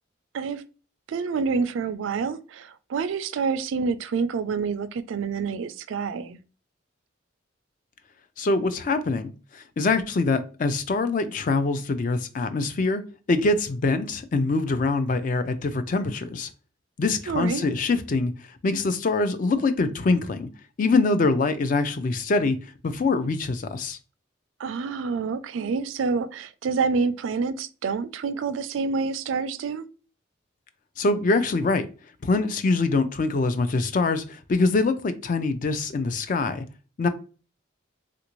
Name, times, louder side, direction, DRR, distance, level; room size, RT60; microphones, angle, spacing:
voice 1, 1.1-6.4 17.3-17.7 24.6-29.9, right 5 dB, 80° right, 0.3 m, -27 dB
voice 2, 8.4-13.0 13.3-16.5 17.0-18.3 18.6-20.5 20.8-22.6 22.8-24.0 31.0-31.9 32.2-36.6 37.0-37.1, left 3 dB, 40° left, 0.3 m, -24 dB
3.3 x 2.5 x 2.9 m
head